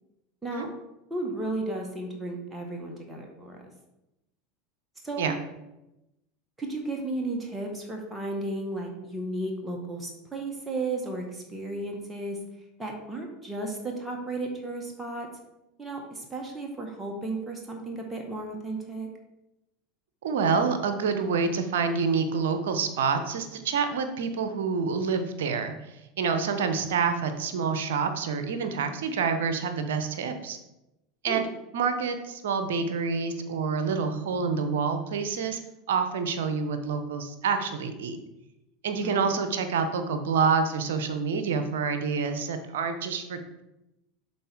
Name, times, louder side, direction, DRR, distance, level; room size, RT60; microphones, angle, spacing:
voice 1, 1.1-3.7 5.0-5.3 6.6-12.4 12.8-15.3 15.8-19.1 31.3-31.4 39.0-39.4, right 2 dB, 10° right, 0 dB, 1.6 m, -34 dB
voice 2, 20.2-30.6 31.2-31.5 31.7-35.6 35.9-38.2 38.8-43.4, right 5 dB, 60° right, 8 dB, 0.9 m, -27 dB
11.0 x 4.2 x 3.6 m, 0.92 s
figure-of-eight pair, 80°, 0 cm